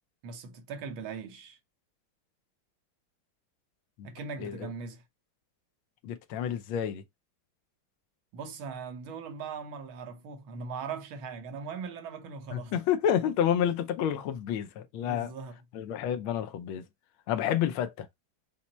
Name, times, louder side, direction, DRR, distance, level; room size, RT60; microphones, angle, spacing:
voice 1, 0.2-1.6 4.0-5.0 8.3-12.8 15.0-15.6, right 5 dB, 75° right, 1.7 m, -40 dB
voice 2, 6.0-7.0 12.5-15.3 15.7-16.8 17.3-18.1, left 9 dB, 80° left, 1.5 m, -29 dB
5.8 x 2.1 x 3.9 m
omnidirectional pair, 2.2 m